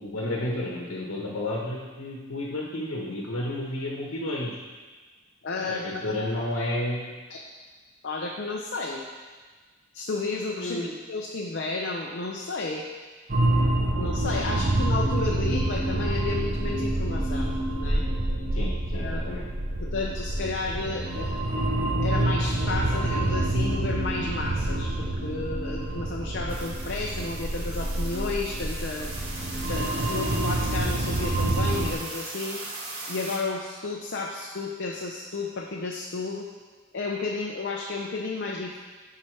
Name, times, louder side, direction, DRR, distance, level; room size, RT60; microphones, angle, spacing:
voice 1, 0.0-4.6 5.5-7.1 10.5-10.9 18.5-19.5, left 1 dB, 85° left, -2 dB, 1.2 m, -31 dB
voice 2, 5.4-6.4 7.3-7.4 8.0-9.0 9.9-12.8 14.0-18.0 18.9-19.2 19.8-21.4 22.0-29.1 29.7-32.6 33.1-36.5 36.9-38.8, left 3 dB, 55° left, -1 dB, 0.6 m, -32 dB
sound 1, 13.3-31.9, right 1 dB, 45° right, 0.8 m, -27 dB
sound 2, 26.5-33.4, right 2 dB, 80° right, 1.5 m, -39 dB
9.7 x 5.6 x 3.3 m, 1.4 s
head